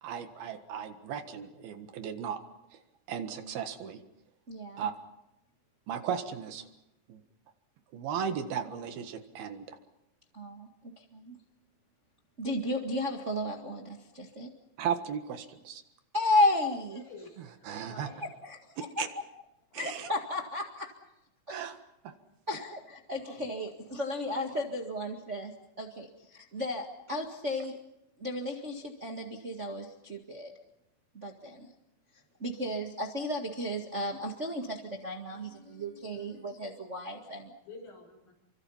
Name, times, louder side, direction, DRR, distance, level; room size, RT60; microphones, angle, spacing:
voice 1, 0.0-2.4 3.1-4.0 4.8-4.9 5.9-6.7 7.1-7.2 7.9-9.8 14.8-15.8 17.4-18.1 19.0-19.1 19.7-20.1 21.5-21.8 22.1-22.2, right 8 dB, 90° right, 7 dB, 3.6 m, -36 dB
voice 2, 4.5-4.9 10.3-10.7 11.0-11.4 12.4-14.5 16.1-17.0 18.4-19.2 19.7-20.9 21.5-21.7 22.5-25.5 25.8-27.7 28.2-30.5 31.1-31.7 32.4-37.5, left 1 dB, 30° right, 1 dB, 1.4 m, -33 dB
voice 3, 16.9-18.3 19.7-19.9 35.3-36.6 37.6-38.3, left 3 dB, 75° left, 1 dB, 8.5 m, -51 dB
29.5 x 24.5 x 5.7 m, 0.89 s
omnidirectional pair, 4.2 m